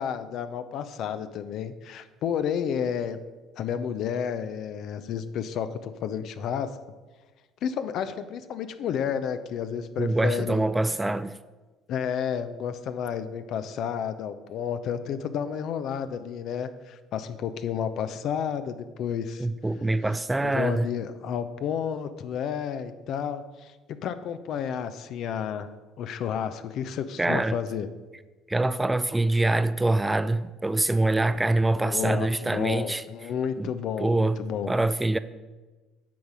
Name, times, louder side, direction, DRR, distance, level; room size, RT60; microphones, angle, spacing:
voice 1, 0.0-3.2 3.6-6.7 7.6-10.7 11.9-19.5 20.4-25.7 26.0-27.9 31.8-34.7, left 8 dB, 60° left, 0.5 m, -31 dB
voice 2, 10.0-11.4 19.4-20.9 27.2-27.6 28.5-33.0 33.6-33.7 34.0-34.4 34.7-35.2, right 2 dB, 15° right, 0.4 m, -24 dB
8.5 x 4.1 x 6.1 m
hypercardioid pair, 65°, 0 cm